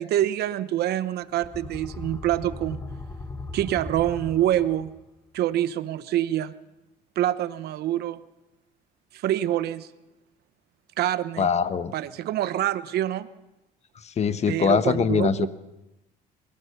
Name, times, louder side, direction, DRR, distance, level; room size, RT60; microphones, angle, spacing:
voice 1, 0.0-2.8 3.5-4.9 5.3-6.5 7.2-8.2 9.1-9.9 11.0-11.5 11.9-13.3 14.5-15.5, right 12 dB, 70° right, 14 dB, 1.0 m, -26 dB
sound 1, 1.3-5.1, left 2 dB, 15° left, 1.3 m, -38 dB
voice 2, 11.4-11.9 14.0-15.5, left 6 dB, 40° left, 12 dB, 1.2 m, -23 dB
25.0 x 17.5 x 6.9 m, 0.94 s
cardioid pair, 110°, 17 cm